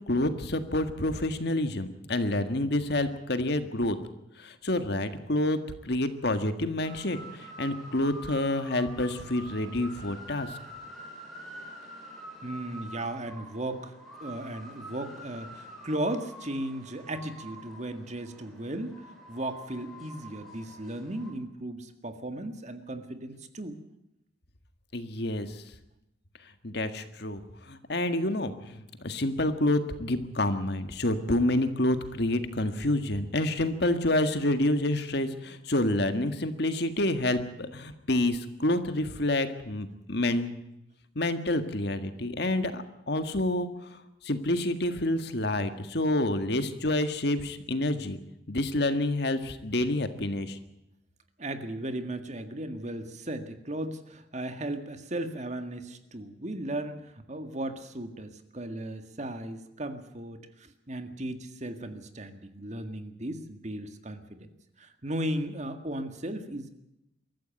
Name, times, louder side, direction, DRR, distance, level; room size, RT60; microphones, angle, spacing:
voice 1, 0.1-3.9 4.4-5.6 5.8-10.6 24.9-25.6 26.6-40.5 41.1-43.7 44.2-48.2 48.5-50.6, left 1 dB, 55° left, 9 dB, 1.7 m, -28 dB
sound 1, 6.8-21.3, right 1 dB, ahead, 7.7 m, -46 dB
voice 2, 12.4-13.9 14.2-23.8 51.4-64.5 64.8-66.7, right 1 dB, 35° right, 8 dB, 1.8 m, -36 dB
23.5 x 14.0 x 9.2 m, 0.87 s
head